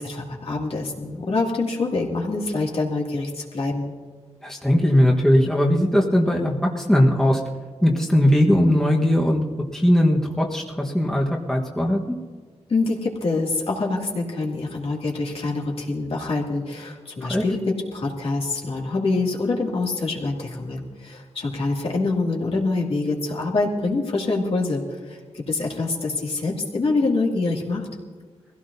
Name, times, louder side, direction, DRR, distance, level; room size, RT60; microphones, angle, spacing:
voice 1, 0.0-3.9 12.7-27.9, left 3 dB, 60° left, -2 dB, 2.5 m, -25 dB
voice 2, 4.4-7.4 7.8-9.4 9.7-12.1 17.2-17.4, equal, 5° left, -2 dB, 1.4 m, -19 dB
22.0 x 16.0 x 2.8 m, 1.5 s
wide cardioid pair, 105°, 11 cm